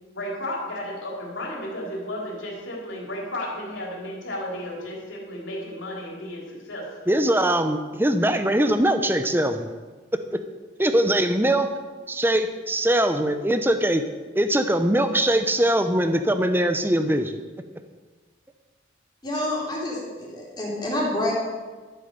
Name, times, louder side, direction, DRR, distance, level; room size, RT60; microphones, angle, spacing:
voice 1, 0.1-7.0, left 1 dB, 85° left, -2 dB, 3.6 m, -33 dB
voice 2, 7.1-9.7 10.3-10.4 10.8-11.7 12.1-14.0 14.3-17.4, right 1 dB, 10° right, 8 dB, 0.7 m, -21 dB
voice 3, 19.2-21.3, left 1 dB, 20° left, -4 dB, 3.5 m, -28 dB
13.0 x 8.2 x 6.8 m, 1.3 s
head